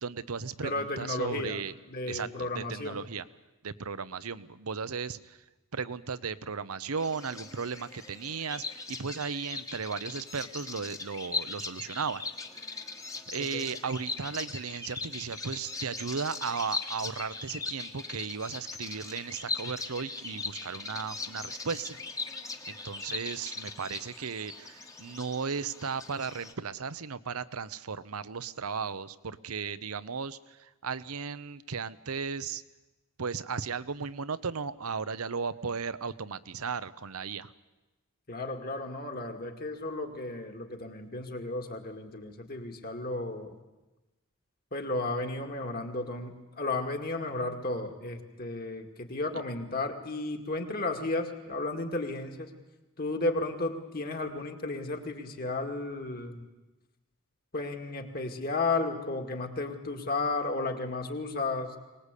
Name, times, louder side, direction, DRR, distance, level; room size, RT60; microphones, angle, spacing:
voice 1, 0.0-1.7 2.1-3.2 3.6-5.4 5.7-12.2 13.3-22.0 22.7-32.6 33.2-37.5, right 5 dB, 90° right, 15 dB, 0.9 m, -35 dB
voice 2, 0.6-1.6 1.9-3.0 13.4-13.7 38.3-43.6 44.7-52.5 53.0-56.5 57.5-61.8, left 2 dB, 45° left, 4 dB, 2.2 m, -33 dB
Bird vocalization bird call bird song, 7.0-26.5, left 3 dB, 15° left, 1.2 m, -40 dB
23.5 x 19.5 x 8.4 m, 1.1 s
head